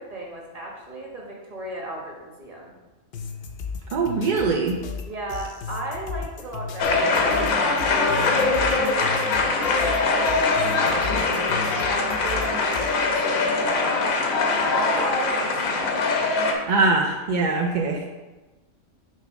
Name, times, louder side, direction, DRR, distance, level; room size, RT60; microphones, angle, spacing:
voice 1, 0.0-2.7 5.0-8.3 8.7-11.4 11.8-14.1 14.5-15.9 16.5-16.6, right 2 dB, 30° right, -2 dB, 1.4 m, -35 dB
sound 1, 3.1-13.0, left 5 dB, 60° left, 0.7 m, -36 dB
voice 2, 3.9-4.8 16.7-18.0, right 3 dB, 60° right, 1 dB, 0.5 m, -22 dB
sound 2, 6.8-16.5, left 3 dB, 90° left, 1.2 m, -22 dB
6.4 x 3.5 x 5.1 m, 1.1 s
omnidirectional pair, 1.4 m